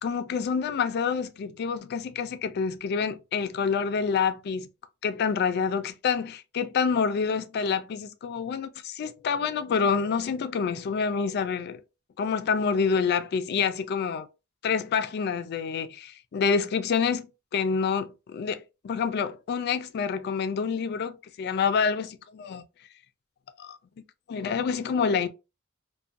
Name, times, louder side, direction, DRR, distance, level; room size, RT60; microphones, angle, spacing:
voice 1, 0.0-4.7 5.0-11.8 12.2-14.3 14.6-17.3 17.5-22.6 23.6-23.8 24.3-25.3, left 6 dB, 50° left, 0.3 m, -27 dB
2.5 x 2.2 x 2.4 m
head